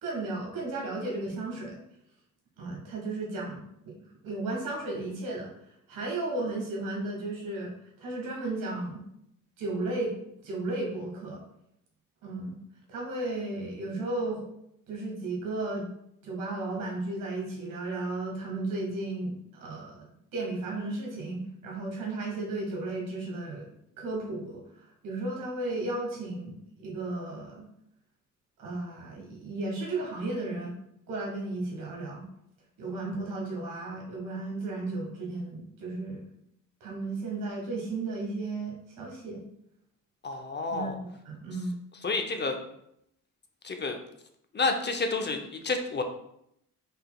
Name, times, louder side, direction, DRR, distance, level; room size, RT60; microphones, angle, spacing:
voice 1, 0.0-1.8 2.6-4.0 4.2-5.5 5.9-9.0 9.6-11.4 12.2-12.6 12.9-14.5 14.9-15.9 16.2-20.1 20.3-24.6 25.0-27.7 28.6-30.7 31.1-32.3 32.8-36.2 36.8-39.4 40.7-41.8, right 2 dB, 85° right, -2 dB, 1.6 m, -34 dB
voice 2, 40.2-41.0 42.0-42.6 43.6-44.0 44.5-46.0, left 3 dB, 35° left, 5 dB, 0.7 m, -29 dB
5.4 x 3.9 x 2.3 m, 0.75 s
cardioid pair, 80°, 32 cm